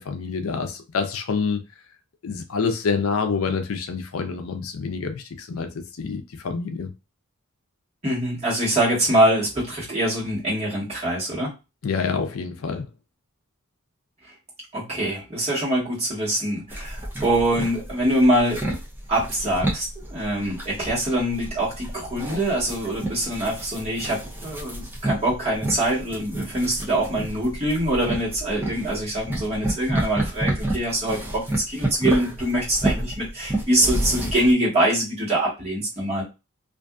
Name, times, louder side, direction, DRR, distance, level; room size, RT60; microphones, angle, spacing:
voice 1, 0.0-1.6 2.2-6.9 11.8-12.9, left 5 dB, 70° left, 0.5 m, -27 dB
voice 2, 8.0-11.5 14.7-18.6 19.1-36.2, right 1 dB, 30° right, 1.4 m, -24 dB
sound 1, 16.7-34.5, right 1 dB, 10° right, 0.6 m, -30 dB
2.5 x 2.5 x 2.3 m
head